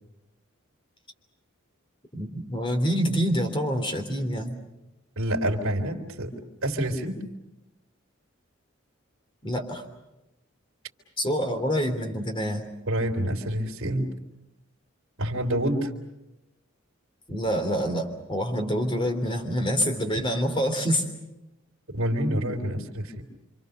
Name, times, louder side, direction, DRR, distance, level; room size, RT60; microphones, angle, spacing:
voice 1, 2.1-4.6 9.4-9.8 11.2-12.7 17.3-21.0, equal, 25° left, 5 dB, 3.3 m, -26 dB
voice 2, 5.1-6.3 6.6-7.2 12.9-14.1 15.2-15.9 20.2-20.3 21.9-23.2, right 1 dB, 75° right, 1 dB, 3.3 m, -27 dB
28.0 x 26.0 x 6.7 m, 0.95 s
head